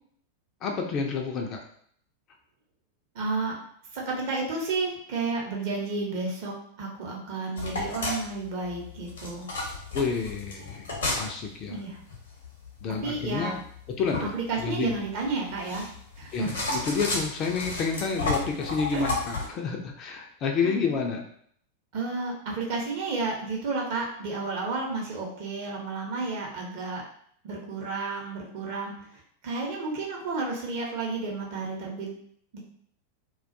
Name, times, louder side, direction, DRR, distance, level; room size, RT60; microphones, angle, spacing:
voice 1, 0.6-1.6 9.9-10.9 11.1-11.8 12.8-13.6 14.0-14.3 14.6-14.9 16.3-21.2, left 5 dB, 35° left, 2 dB, 0.4 m, -29 dB
voice 2, 3.1-3.5 3.9-9.5 11.7-12.0 13.0-13.5 14.2-15.9 16.2-16.5 18.9-19.0 19.3-19.5 20.6-20.7 21.9-27.0 27.4-32.1 32.5-32.6, right 3 dB, 50° right, -1 dB, 0.7 m, -32 dB
sound 1, 7.6-19.5, left 2 dB, 65° left, 0.7 m, -33 dB
2.2 x 2.2 x 2.6 m, 0.63 s
figure-of-eight pair, 90°, 0 cm